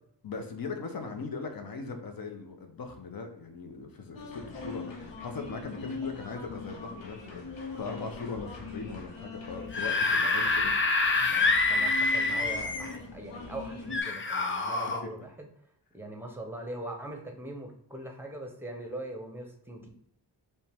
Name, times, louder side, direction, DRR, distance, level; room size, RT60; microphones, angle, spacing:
voice 1, 0.2-10.7, left 4 dB, 55° left, 4 dB, 0.8 m, -39 dB
sound 1, 4.1-14.0, left 4 dB, 90° left, 0.9 m, -42 dB
Screaming / Screech, 9.6-13.0 13.9-15.0, left 3 dB, 30° left, 0.4 m, -26 dB
voice 2, 11.7-15.5 15.9-19.8, right 1 dB, 5° right, 2 dB, 0.7 m, -41 dB
5.3 x 2.2 x 3.4 m, 0.72 s
wide cardioid pair, 125°, 43 cm